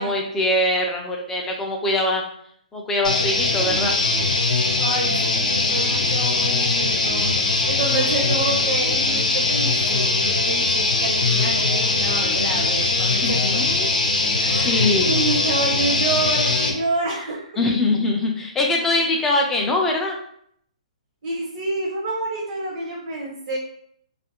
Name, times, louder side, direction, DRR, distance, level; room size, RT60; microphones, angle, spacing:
voice 1, 0.0-2.2 2.7-3.9 13.2-13.9 14.6-15.1 17.6-20.2, left 2 dB, 10° left, 0 dB, 0.4 m, -22 dB
sound 1, 3.0-16.7, left 3 dB, 90° left, 0.6 m, -21 dB
voice 2, 4.8-7.3 7.7-13.6 14.4-17.6 21.2-23.6, right 3 dB, 45° right, -2 dB, 0.6 m, -28 dB
2.5 x 2.4 x 2.8 m, 0.67 s
hypercardioid pair, 160°, 4 cm